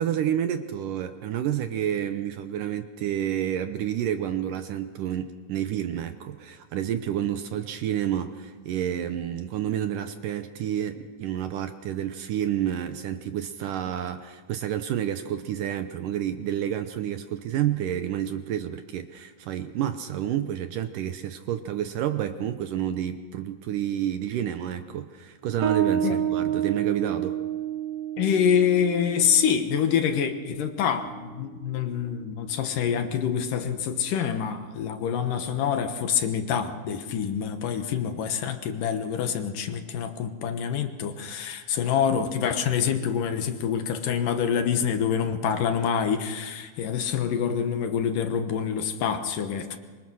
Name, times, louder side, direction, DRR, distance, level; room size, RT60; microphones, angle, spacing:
voice 1, 0.0-27.4, right 10 dB, 70° right, 9 dB, 2.2 m, -29 dB
Bass guitar, 25.6-32.8, right 10 dB, 55° right, 1.9 m, -31 dB
voice 2, 28.2-49.8, left 8 dB, 65° left, 7 dB, 2.6 m, -26 dB
25.5 x 24.0 x 6.3 m, 1.4 s
omnidirectional pair, 4.4 m